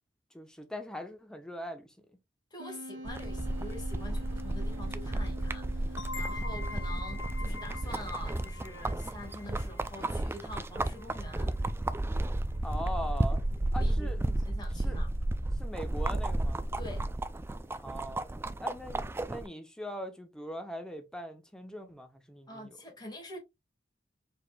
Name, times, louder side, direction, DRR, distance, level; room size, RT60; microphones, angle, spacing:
voice 1, 0.3-2.2 12.6-13.4 13.7-14.4 14.8-15.0 15.6-16.6 17.8-18.3 18.6-22.8, equal, 5° left, 0.8 m, -41 dB
voice 2, 2.5-11.5 13.7-14.1 14.4-15.1 16.8-17.0 22.5-23.4, left 1 dB, 25° left, 1.8 m, -45 dB
Wind instrument woodwind instrument, 2.6-8.3, equal, 90° right, 1.1 m, -46 dB
sound 1, 3.1-19.5, right 1 dB, 15° right, 0.3 m, -33 dB
sound 2, 6.0-11.4, left 3 dB, 70° left, 0.5 m, -45 dB
4.9 x 4.2 x 2.2 m
head